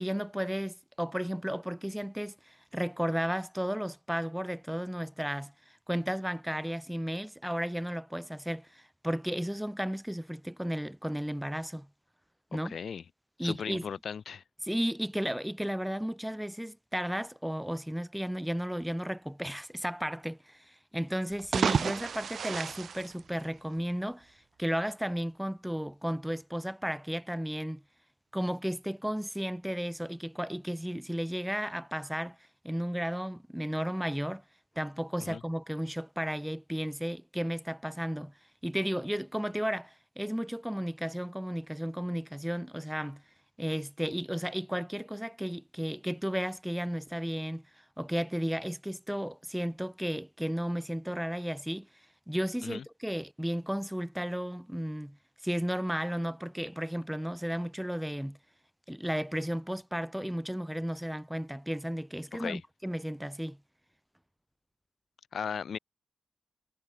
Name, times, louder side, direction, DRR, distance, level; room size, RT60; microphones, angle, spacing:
voice 1, 0.0-5.5 5.9-11.9 12.5-12.8 13.4-13.8 14.6-27.8 28.3-32.4 32.6-34.4 34.8-38.3 38.6-43.2 43.6-47.6 48.0-51.9 52.3-55.2 55.4-58.4 58.9-63.6, equal, 5° right, 1.1 m, -34 dB
voice 2, 12.6-13.0 13.4-14.4 35.2-35.4 52.6-52.8 62.3-62.6 65.3-65.8, left 7 dB, 70° left, 1.0 m, -37 dB
sound 1, 21.3-23.9, right 6 dB, 70° right, 0.4 m, -32 dB
wide cardioid pair, 135°, 0 cm